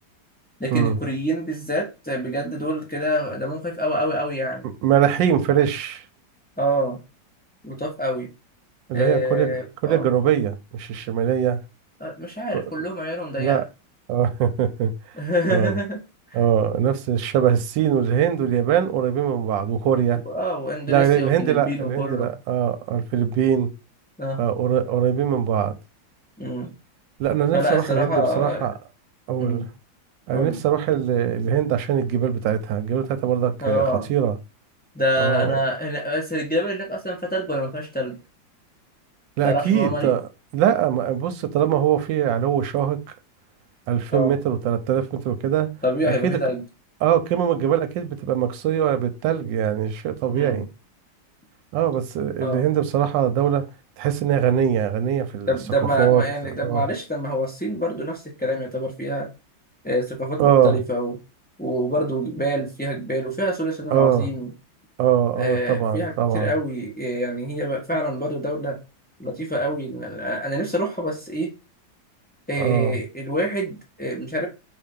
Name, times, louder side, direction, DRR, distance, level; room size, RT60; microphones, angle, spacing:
voice 1, 0.6-4.7 6.6-7.0 7.6-8.3 8.9-10.1 12.0-13.6 15.1-16.0 16.3-16.4 20.2-22.3 24.2-24.4 26.4-26.7 27.5-28.7 29.4-29.7 30.3-30.6 33.6-34.1 34.9-38.2 39.4-40.2 44.1-44.3 45.8-46.6 50.3-50.6 52.4-52.6 55.5-59.3 59.8-61.2 61.6-64.5 65.4-68.8 69.2-71.5 72.5-74.5, equal, 5° left, 0.8 m, -26 dB
voice 2, 4.8-6.0 8.9-9.5 9.8-11.6 12.5-12.6 13.4-13.6 14.1-14.9 15.5-15.8 16.3-20.2 20.9-23.7 24.4-25.7 27.2-28.7 29.3-29.6 30.3-33.8 34.1-34.3 35.2-35.5 39.4-40.2 40.5-43.0 43.9-45.7 46.0-46.4 47.0-50.7 51.7-53.6 54.0-55.5 56.0-56.2 56.6-56.8 60.4-60.8 63.9-64.3 65.0-66.5 72.6-73.0, right 9 dB, 75° right, 1.3 m, -22 dB
4.9 x 2.7 x 3.7 m
omnidirectional pair, 2.1 m